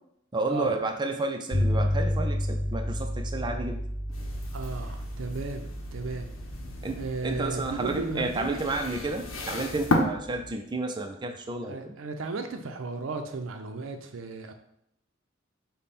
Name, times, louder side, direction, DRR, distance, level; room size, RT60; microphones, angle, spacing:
voice 1, 0.3-3.8 6.8-11.9, right 2 dB, 25° right, 4 dB, 0.5 m, -31 dB
sound 1, 1.5-10.5, left 1 dB, 25° left, 1.7 m, -32 dB
sound 2, 4.1-10.0, left 3 dB, 75° left, 0.8 m, -35 dB
voice 2, 4.5-6.3 7.0-8.6 11.7-14.5, right 3 dB, 75° right, 6 dB, 0.5 m, -35 dB
5.3 x 2.2 x 4.1 m, 0.77 s
head